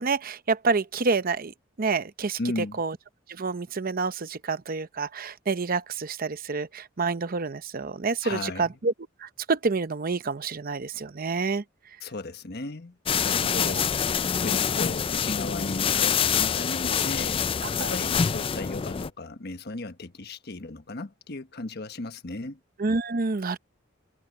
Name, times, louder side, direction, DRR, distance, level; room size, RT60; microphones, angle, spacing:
voice 1, 0.0-2.4 2.8-3.0 3.3-8.9 9.2-11.6 13.4-13.7 17.6-17.9 22.8-23.6, right 4 dB, 45° right, 0.7 m, -28 dB
voice 2, 2.4-2.8 8.2-8.8 12.0-13.9 14.2-17.4 17.8-22.6, left 2 dB, 55° left, 1.2 m, -36 dB
sound 1, 13.1-19.1, left 7 dB, 25° left, 0.3 m, -26 dB
head